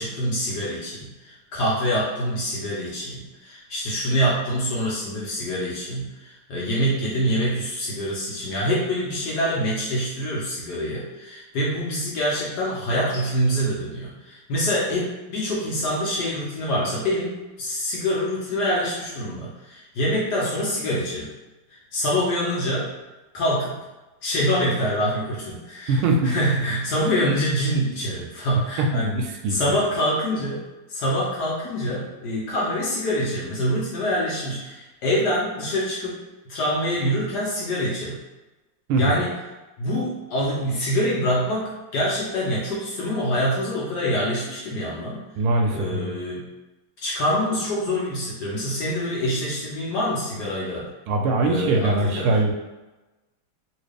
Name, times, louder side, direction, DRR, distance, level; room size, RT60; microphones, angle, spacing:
voice 1, 0.0-21.3 21.7-22.9 23.3-23.8 24.2-30.6 30.9-36.2 36.5-38.2 39.0-39.3 39.8-45.2 45.7-46.4 47.0-50.9 51.4-52.4, equal, 65° left, -5 dB, 1.1 m, -25 dB
voice 2, 25.9-26.3 28.8-29.6 38.9-39.1 45.4-46.1 51.1-52.5, right 2 dB, 80° right, 2 dB, 1.4 m, -22 dB
3.1 x 2.8 x 3.3 m, 1.1 s
omnidirectional pair, 2.3 m